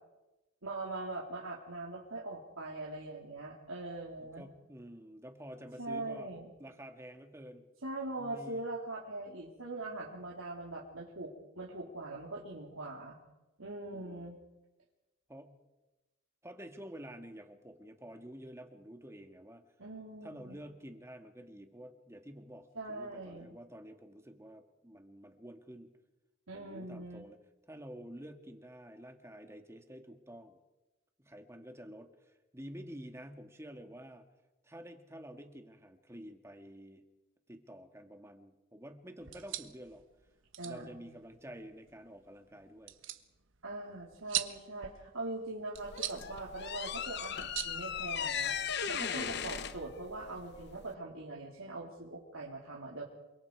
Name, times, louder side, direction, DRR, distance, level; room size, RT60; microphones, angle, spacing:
voice 1, 0.6-4.5 5.8-6.4 7.8-13.2 13.6-14.4 19.8-20.6 22.8-23.6 26.5-27.3 40.6-41.0 43.6-48.6 48.9-53.0, right 2 dB, 85° right, -3 dB, 3.5 m, -42 dB
voice 2, 4.2-6.3 6.6-7.6 8.2-8.6 13.9-14.3 15.3-15.5 16.4-19.6 20.2-25.9 26.5-27.4 27.7-30.6 31.2-34.3 34.6-37.0 37.5-40.0 40.6-43.0, equal, 15° right, 5 dB, 2.0 m, -49 dB
sound 1, 39.2-48.7, right 12 dB, 65° right, 1.4 m, -43 dB
sound 2, 45.7-50.9, left 7 dB, 55° left, 1.0 m, -37 dB
28.0 x 24.5 x 4.8 m, 1.0 s
head